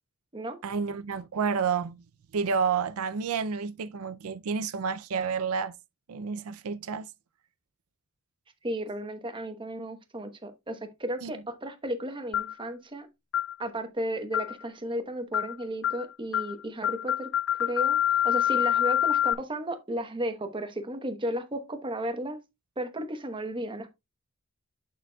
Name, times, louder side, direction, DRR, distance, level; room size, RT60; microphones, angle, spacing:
voice 1, 0.6-2.0 2.3-5.7 6.1-7.1 11.2-11.3, right 6 dB, 80° right, 0.5 m, -30 dB
voice 2, 8.6-13.1 13.6-17.3 17.6-22.4 22.8-23.9, right 1 dB, 20° right, 1.0 m, -34 dB
sound 1, 12.3-12.6 13.3-13.5 14.3-14.6 15.3-15.5 15.8-16.0 16.3-16.5 16.8-19.3, left 11 dB, 55° left, 0.4 m, -26 dB
8.3 x 6.9 x 2.3 m
head